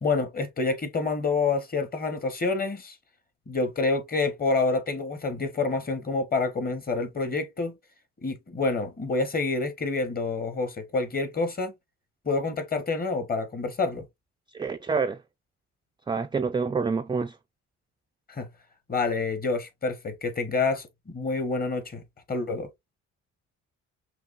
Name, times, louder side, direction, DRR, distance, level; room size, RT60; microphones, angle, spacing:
voice 1, 0.0-3.0 3.5-7.7 8.2-11.7 12.2-14.0 18.3-18.5 18.9-22.0 22.3-22.7, left 3 dB, 30° left, 1.2 m, -28 dB
voice 2, 14.5-15.2 16.1-17.4, right 5 dB, 15° right, 0.3 m, -27 dB
5.9 x 2.3 x 2.5 m
cardioid pair, 90°, 30 cm